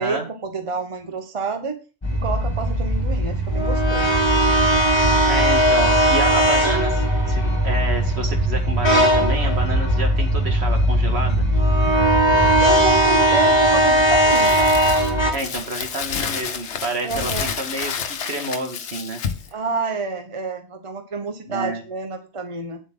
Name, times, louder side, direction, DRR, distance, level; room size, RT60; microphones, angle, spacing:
voice 1, 0.0-1.7 2.1-4.3 12.2-14.8 17.0-17.5 19.5-22.8, right 4 dB, 30° right, 6 dB, 1.0 m, -29 dB
sound 1, 2.0-15.3, right 1 dB, 25° left, 1.7 m, -18 dB
voice 2, 5.3-11.5 15.3-19.2 21.5-21.8, right 2 dB, 70° right, 3 dB, 2.2 m, -29 dB
Crumpling crinkling, 14.3-19.5, left 7 dB, 90° left, 1.1 m, -29 dB
8.5 x 7.2 x 3.8 m, 0.33 s
omnidirectional pair, 1.1 m